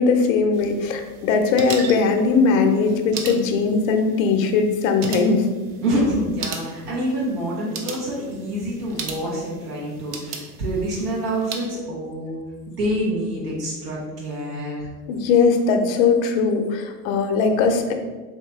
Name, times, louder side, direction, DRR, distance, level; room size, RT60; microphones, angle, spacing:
voice 1, 0.0-5.5 15.1-17.9, left 4 dB, 55° left, 5 dB, 0.6 m, -19 dB
sound 1, 0.5-11.7, right 5 dB, 50° right, 0.6 m, -37 dB
voice 2, 5.8-12.4 12.7-14.9, right 1 dB, 70° right, -5 dB, 1.1 m, -26 dB
2.9 x 2.8 x 3.4 m, 1.3 s
figure-of-eight pair, 80°, 48 cm